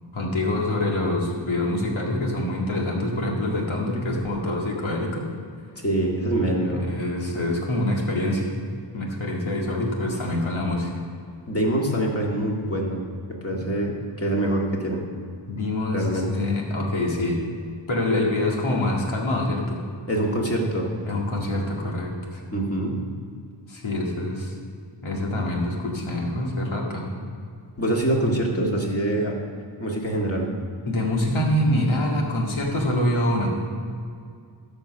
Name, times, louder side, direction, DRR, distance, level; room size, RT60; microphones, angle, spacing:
voice 1, 0.1-5.2 6.6-8.5 8.9-10.9 13.5-13.6 15.5-17.4 17.9-19.8 21.1-22.4 23.7-24.5 25.0-27.1 30.9-33.6, left 1 dB, 80° left, -1 dB, 2.1 m, -25 dB
voice 2, 5.8-6.8 10.1-10.2 11.5-13.0 13.3-15.0 15.9-16.3 20.1-20.9 22.5-23.0 27.8-29.4 29.8-30.5, right 1 dB, 30° left, -2 dB, 2.1 m, -24 dB
13.0 x 5.3 x 6.3 m, 2.3 s
wide cardioid pair, 75°, 47 cm